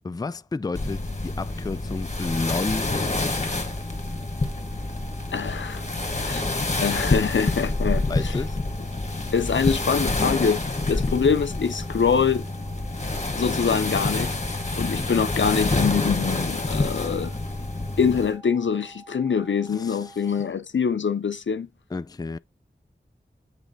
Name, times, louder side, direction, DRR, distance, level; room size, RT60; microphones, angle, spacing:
voice 1, 0.0-3.7 6.5-6.6 8.1-8.6 11.1-11.2 14.8-15.1 19.7-20.3 21.9-22.4, left 3 dB, 20° left, 0.3 m, -32 dB
sound 1, 0.7-18.3, left 2 dB, 35° left, 1.3 m, -27 dB
sound 2, 2.2-20.5, right 3 dB, 75° right, 2.3 m, -49 dB
voice 2, 5.3-5.8 6.2-6.4 6.8-8.4 9.3-10.6 10.9-12.4 13.4-14.4 14.8-17.4 18.0-21.7, left 6 dB, 85° left, 0.6 m, -24 dB
8.2 x 3.1 x 4.0 m
wide cardioid pair, 45°, 19 cm